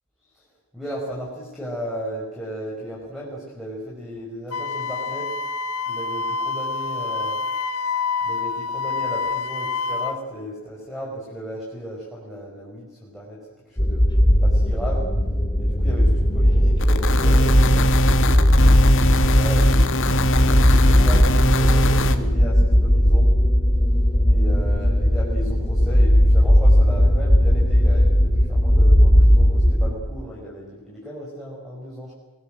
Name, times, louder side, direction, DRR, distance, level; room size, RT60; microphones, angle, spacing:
voice 1, 0.7-5.3 5.9-7.4 8.2-13.4 13.7-14.1 14.4-15.0 15.6-20.0 20.5-23.3 24.3-32.1, equal, ahead, -5 dB, 5.5 m, -35 dB
Wind instrument woodwind instrument, 4.5-10.2, left 4 dB, 75° left, 1.2 m, -27 dB
sound 1, 13.8-29.9, equal, 20° left, 2.6 m, -17 dB
sound 2, 16.8-22.1, equal, 60° left, 1.9 m, -22 dB
24.0 x 19.0 x 7.8 m, 1.2 s
head